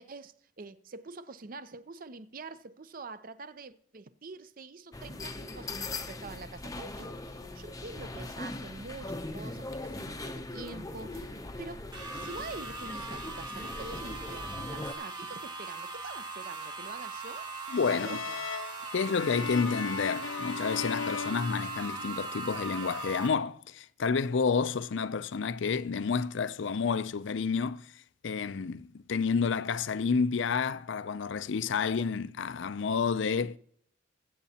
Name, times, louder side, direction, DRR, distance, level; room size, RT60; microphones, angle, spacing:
voice 1, 0.0-11.8 12.1-17.5 17.9-18.5, right 3 dB, 45° right, 0.6 m, -45 dB
sound 1, 4.9-14.9, left 2 dB, 15° left, 0.6 m, -40 dB
sound 2, 11.9-23.3, right 3 dB, 20° right, 1.2 m, -40 dB
sound 3, 17.7-22.3, left 6 dB, 85° left, 0.8 m, -37 dB
voice 2, 17.7-18.2 18.9-27.9 28.2-33.6, left 5 dB, 65° left, 0.4 m, -30 dB
21.0 x 8.2 x 2.8 m
head